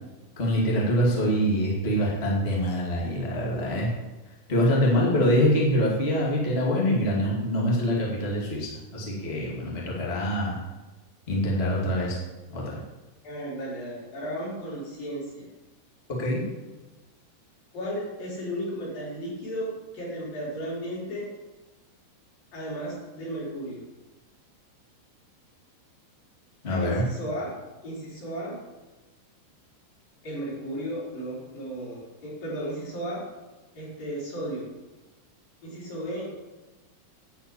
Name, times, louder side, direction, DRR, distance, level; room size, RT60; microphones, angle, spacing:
voice 1, 0.4-3.9 4.5-10.5 11.3-12.2 12.5-12.8 16.1-16.4 26.6-27.1, equal, 65° left, -3 dB, 0.6 m, -25 dB
voice 2, 4.9-5.2 13.2-15.5 17.7-19.7 19.9-21.3 22.5-23.8 26.7-27.5 27.8-28.6 30.2-33.2 33.8-34.7 35.6-36.3, equal, 45° left, -6 dB, 5.6 m, -34 dB
10.0 x 6.1 x 8.5 m, 1.2 s
omnidirectional pair, 5.9 m